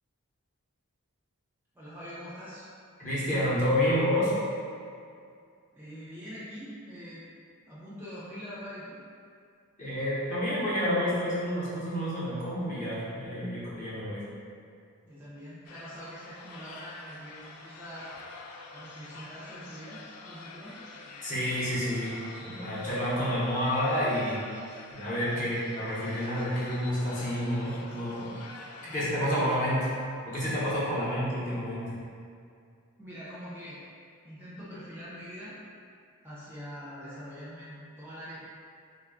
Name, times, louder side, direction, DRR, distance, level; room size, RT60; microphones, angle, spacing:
voice 1, 1.7-2.6 5.7-7.2 7.7-9.0 15.0-18.1 18.7-20.8 28.8-29.1 33.0-33.8 34.2-35.6 36.2-38.4, equal, 10° right, -10 dB, 0.5 m, -44 dB
voice 2, 3.0-4.3 9.8-14.2 21.2-22.1 22.4-24.4 24.9-28.3 28.9-29.9 30.3-31.9, equal, 35° left, -9 dB, 0.8 m, -29 dB
sound 1, 15.6-29.0, left 3 dB, 90° left, 0.4 m, -47 dB
3.0 x 2.3 x 3.6 m, 2.3 s
head